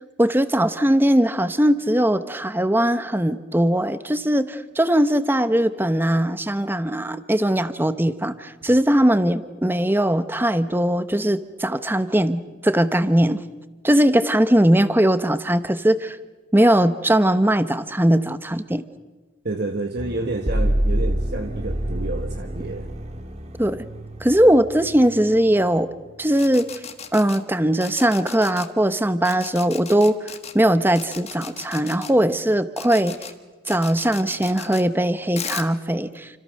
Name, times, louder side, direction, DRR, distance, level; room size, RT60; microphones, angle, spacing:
voice 1, 0.2-13.4 13.8-16.2 16.5-18.8 23.6-23.8 24.2-25.9 26.2-26.7 27.1-33.1 33.7-36.4, right 1 dB, 10° right, 11 dB, 0.9 m, -20 dB
voice 2, 19.4-22.9, right 2 dB, 50° right, 4 dB, 1.5 m, -29 dB
sound 1, 20.0-26.2, right 1 dB, 30° right, 2.0 m, -27 dB
sound 2, 26.3-27.4 27.8-28.7 29.2-30.5 31.0-32.1 32.8-33.3 33.7-34.8 35.4-35.7, left 7 dB, 30° left, 1.6 m, -36 dB
29.0 x 26.0 x 6.5 m, 1.4 s
head